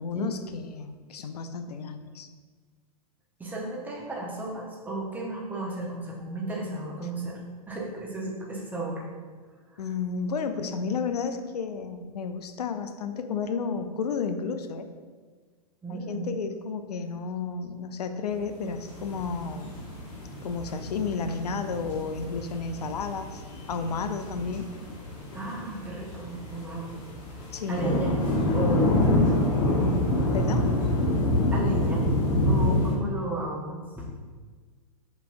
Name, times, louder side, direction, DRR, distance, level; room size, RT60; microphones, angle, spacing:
voice 1, 0.0-2.3 9.8-14.9 15.9-19.7 20.4-23.4 23.7-24.7 27.5-28.1 30.3-30.7, left 5 dB, 75° left, 9 dB, 0.4 m, -32 dB
voice 2, 3.4-7.4 7.7-9.0 9.7-9.8 15.8-16.3 25.3-27.0 27.3-27.4 27.7-28.1 28.5-29.1 31.5-32.0 32.5-34.2, right 2 dB, 10° right, -4 dB, 0.9 m, -34 dB
sound 1, 18.7-32.9, left 1 dB, 55° left, 1.3 m, -27 dB
5.3 x 3.0 x 2.6 m, 1.5 s
hypercardioid pair, 105°, 20 cm